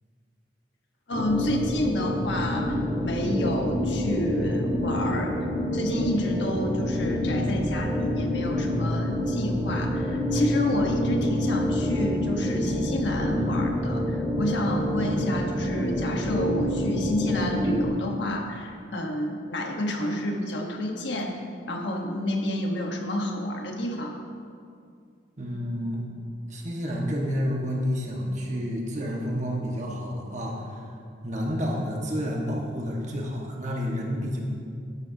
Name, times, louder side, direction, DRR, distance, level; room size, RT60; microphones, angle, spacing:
voice 1, 1.1-5.3 5.7-21.4 21.7-24.2, left 1 dB, 70° left, 1 dB, 1.3 m, -29 dB
sound 1, 1.1-17.9, left 1 dB, 5° right, 2.5 m, -27 dB
voice 2, 25.4-26.1 26.5-30.8 31.2-34.4, equal, 40° right, -1 dB, 1.5 m, -30 dB
12.5 x 11.0 x 2.8 m, 2.3 s
head